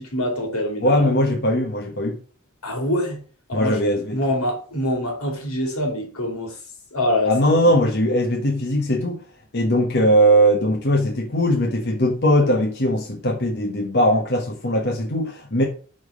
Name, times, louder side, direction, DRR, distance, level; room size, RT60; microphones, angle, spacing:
voice 1, 0.0-1.2 2.6-3.2 3.5-3.8 4.1-6.6 6.9-7.7, left 1 dB, 80° left, 2.6 m, -25 dB
voice 2, 0.8-2.2 3.5-4.2 7.3-9.2 9.5-15.6, equal, 50° left, 1.4 m, -20 dB
6.1 x 5.2 x 5.4 m
head